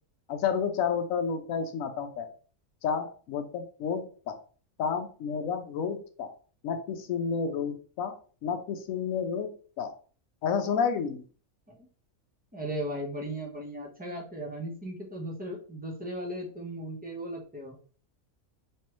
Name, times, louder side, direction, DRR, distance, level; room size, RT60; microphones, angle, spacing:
voice 1, 0.3-2.3 2.8-4.4 4.8-6.3 6.6-8.2 8.4-9.5 9.8-9.9 10.4-11.2, left 6 dB, 75° left, 7 dB, 1.0 m, -30 dB
voice 2, 12.5-17.8, right 1 dB, 10° right, -1 dB, 0.7 m, -37 dB
3.2 x 3.2 x 3.0 m, 0.40 s
omnidirectional pair, 1.5 m